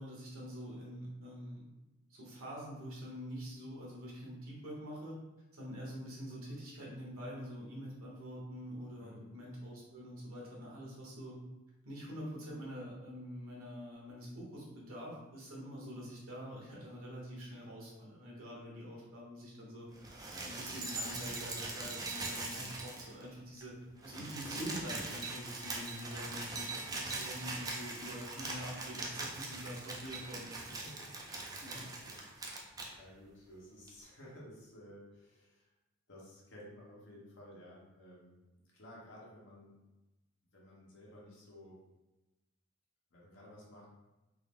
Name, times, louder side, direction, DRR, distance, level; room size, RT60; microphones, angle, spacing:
voice 1, 0.0-1.6 2.1-5.2 5.5-11.4 11.8-19.9 20.4-23.7 24.0-30.5 31.5-31.8, equal, 75° right, -4 dB, 1.1 m, -45 dB
voice 2, 9.0-9.3 22.4-22.7 26.4-26.7 30.5-35.7 36.1-38.4 38.7-39.8 40.5-41.8 43.1-43.9, equal, 60° left, -5 dB, 1.0 m, -55 dB
sound 1, 20.0-23.3 23.6-23.7 23.9-32.9 33.9-34.0, right 2 dB, 15° right, 0.3 m, -42 dB
3.7 x 2.0 x 3.5 m, 1.0 s
head